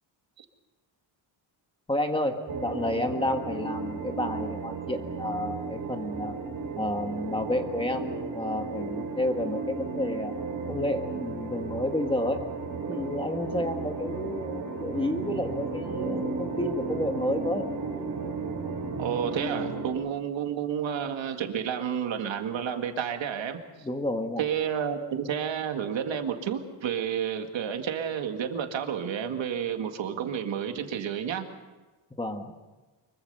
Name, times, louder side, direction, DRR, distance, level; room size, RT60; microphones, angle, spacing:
voice 1, 1.9-6.3 6.8-10.4 10.7-12.4 12.9-17.7 23.8-24.4 32.2-32.5, left 1 dB, 10° left, 5 dB, 1.5 m, -30 dB
sound 1, 2.5-19.9, right 3 dB, 50° right, 4.2 m, -34 dB
voice 2, 19.0-23.6 24.4-31.5, right 8 dB, 70° right, 5 dB, 2.1 m, -30 dB
24.5 x 23.0 x 5.6 m, 1.2 s
wide cardioid pair, 175°, 47 cm